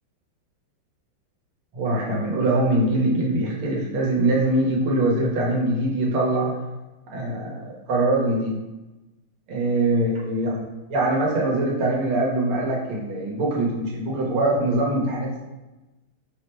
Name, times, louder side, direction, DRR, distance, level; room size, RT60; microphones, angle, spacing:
voice 1, 1.7-6.5 7.1-8.5 9.5-10.5 10.9-15.5, right 2 dB, 85° right, -3 dB, 1.8 m, -23 dB
4.8 x 2.1 x 4.4 m, 1.1 s
omnidirectional pair, 2.3 m